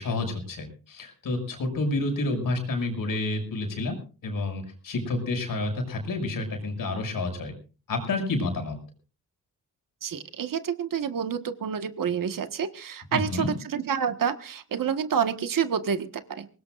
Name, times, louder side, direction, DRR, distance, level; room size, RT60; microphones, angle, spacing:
voice 1, 0.0-3.9 4.2-7.5 7.9-8.8 13.1-13.5, left 2 dB, 85° left, 4 dB, 6.4 m, -29 dB
voice 2, 10.0-16.5, right 7 dB, 80° right, 8 dB, 1.6 m, -28 dB
23.5 x 19.5 x 2.6 m, 0.37 s
wide cardioid pair, 100°, 33 cm